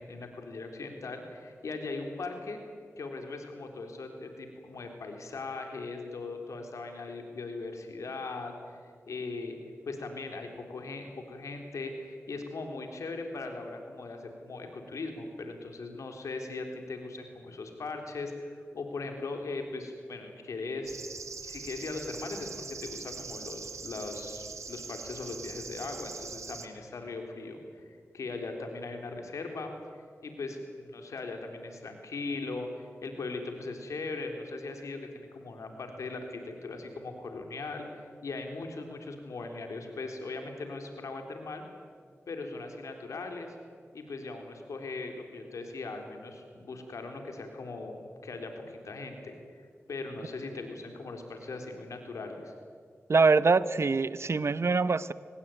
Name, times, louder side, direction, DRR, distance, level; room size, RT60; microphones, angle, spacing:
voice 1, 0.0-2.6 3.0-8.5 9.1-9.6 9.9-21.0 21.4-22.5 22.8-27.8 28.1-29.7 30.2-37.9 38.2-41.6 42.3-43.5 43.9-49.4 49.9-52.5, left 3 dB, 90° left, 4 dB, 3.6 m, -39 dB
sound 1, 20.8-26.7, right 5 dB, 80° right, 1.8 m, -42 dB
voice 2, 53.1-55.1, right 4 dB, 60° right, 16 dB, 0.9 m, -24 dB
24.5 x 19.5 x 9.2 m, 2.1 s
cardioid pair, 40°, 5 cm